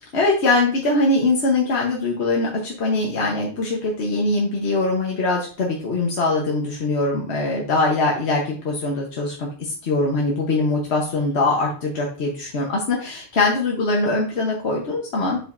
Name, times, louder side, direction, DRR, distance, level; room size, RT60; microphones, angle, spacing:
voice 1, 0.1-15.4, left 2 dB, 75° left, -1 dB, 1.3 m, -22 dB
7.2 x 5.5 x 2.6 m, 0.41 s
omnidirectional pair, 1.1 m